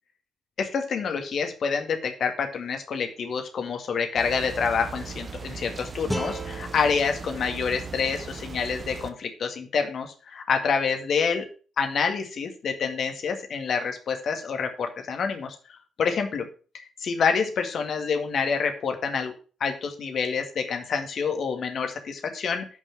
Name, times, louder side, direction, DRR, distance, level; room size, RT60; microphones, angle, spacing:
voice 1, 0.6-11.5 11.8-16.5 16.7-19.3 19.6-22.7, left 5 dB, 55° left, 5 dB, 2.0 m, -27 dB
sound 1, 4.2-9.1, right 5 dB, 35° right, 1.2 m, -38 dB
sound 2, 6.1-9.2, equal, 5° left, 1.9 m, -37 dB
9.1 x 5.5 x 5.9 m, 0.37 s
figure-of-eight pair, 45°, 0 cm